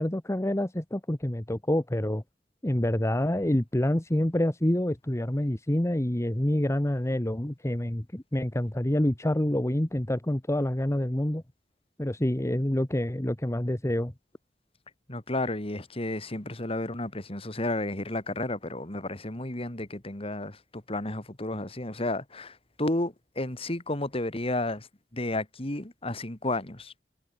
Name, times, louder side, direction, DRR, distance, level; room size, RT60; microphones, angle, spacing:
voice 1, 0.0-2.2 2.6-11.4 12.0-14.1, left 1 dB, 15° left, 1.1 m, -27 dB
voice 2, 15.1-26.9, left 2 dB, 35° left, 2.5 m, -32 dB
head